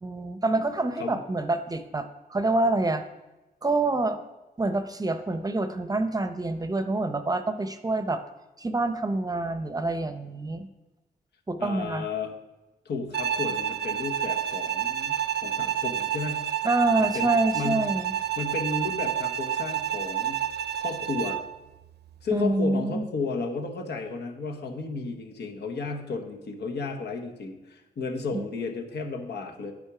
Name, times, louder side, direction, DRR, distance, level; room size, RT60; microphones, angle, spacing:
voice 1, 0.0-3.0 3.6-4.2 4.6-8.2 8.6-10.7 11.5-12.0 16.6-18.1 22.3-23.0 28.3-28.5, right 2 dB, 20° right, 9 dB, 0.6 m, -26 dB
voice 2, 11.6-12.3 12.8-16.5 17.0-17.9 18.4-20.4 20.8-21.4 22.2-29.7, left 4 dB, 80° left, 3 dB, 1.1 m, -33 dB
Bowed string instrument, 13.1-21.5, right 10 dB, 80° right, 0.6 m, -29 dB
8.7 x 5.1 x 4.9 m, 1.0 s
cardioid pair, 85°, 17 cm